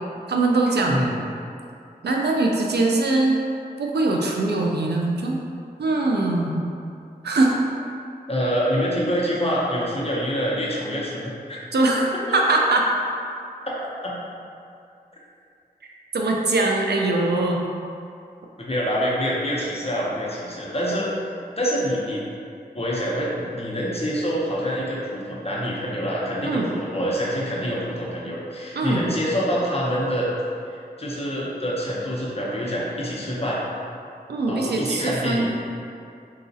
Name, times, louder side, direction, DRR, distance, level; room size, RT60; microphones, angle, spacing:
voice 1, 0.3-1.1 2.0-3.4 3.8-5.4 5.8-6.6 7.2-7.6 11.7-12.8 16.1-17.7 26.5-26.7 28.8-29.0 34.3-35.5, right 2 dB, 80° right, -1 dB, 0.4 m, -22 dB
voice 2, 8.3-11.6 14.0-14.2 18.6-21.1 21.6-22.2 22.7-30.3 30.7-33.6 34.5-35.5, equal, 35° left, -6 dB, 0.8 m, -26 dB
3.9 x 2.3 x 2.6 m, 2.5 s
wide cardioid pair, 45°, 17 cm